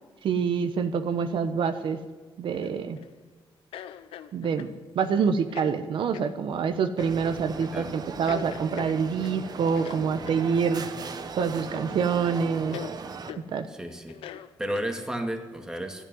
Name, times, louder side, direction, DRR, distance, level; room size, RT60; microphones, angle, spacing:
voice 1, 0.2-2.0 2.4-3.0 4.3-4.7 4.9-10.9 11.4-12.8 13.5-13.7, right 6 dB, 65° right, 8 dB, 1.1 m, -26 dB
sound 1, 2.5-3.1 3.7-4.8 5.5-5.8 6.1-6.3 7.0-7.2 7.6-7.8 8.3-9.4 9.8-10.5 11.4-11.9 12.2-12.3 12.7-12.9 13.3-13.5 14.1-15.2, left 10 dB, 90° left, 0.8 m, -42 dB
sound 2, 7.0-13.3, right 5 dB, 45° right, 1.4 m, -38 dB
voice 2, 13.7-14.2 14.6-16.0, equal, 5° right, 4 dB, 2.1 m, -33 dB
14.0 x 10.0 x 9.6 m, 1.3 s
cardioid pair, 120°, 9 cm